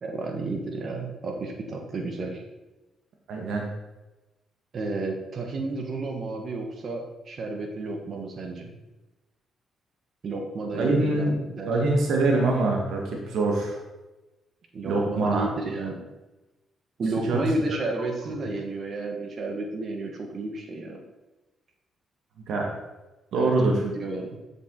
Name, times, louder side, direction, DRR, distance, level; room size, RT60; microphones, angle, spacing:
voice 1, 0.0-2.4 4.7-8.7 10.2-11.7 14.7-16.0 17.0-21.0 23.3-24.4, right 2 dB, 55° right, 3 dB, 1.7 m, -32 dB
voice 2, 3.3-3.7 10.8-11.3 11.7-13.8 14.9-15.5 17.3-17.4 17.7-17.8 22.5-22.7 23.3-23.7, right 2 dB, 75° right, 0 dB, 1.7 m, -24 dB
7.3 x 7.1 x 4.0 m, 1.1 s
supercardioid pair, 55°, 0 cm